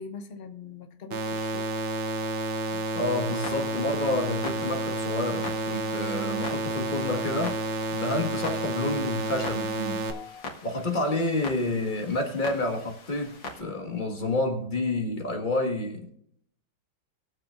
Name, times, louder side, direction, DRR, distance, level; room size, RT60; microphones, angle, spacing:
voice 1, 0.0-1.7 10.1-10.5, left 5 dB, 85° left, 0.5 m, -42 dB
sound 1, 1.1-10.1, right 2 dB, 70° right, 1.8 m, -30 dB
voice 2, 2.7-7.6 7.9-10.1 10.6-16.1, left 2 dB, 25° left, 1.6 m, -29 dB
Clock, 3.1-13.6, left 3 dB, 65° left, 2.3 m, -43 dB
21.5 x 7.6 x 2.5 m
omnidirectional pair, 2.2 m